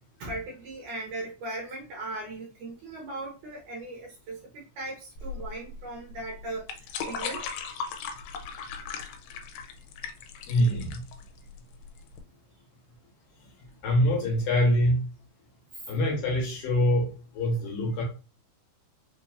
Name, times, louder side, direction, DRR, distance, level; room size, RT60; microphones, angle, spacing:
voice 1, 0.2-7.4, right 2 dB, 70° right, 2.0 m, -38 dB
sound 1, 5.2-12.2, left 6 dB, 85° left, 2.6 m, -38 dB
voice 2, 10.5-11.0 13.8-15.0 15.9-18.0, equal, 70° left, 2.6 m, -24 dB
5.6 x 3.0 x 2.5 m
omnidirectional pair, 4.4 m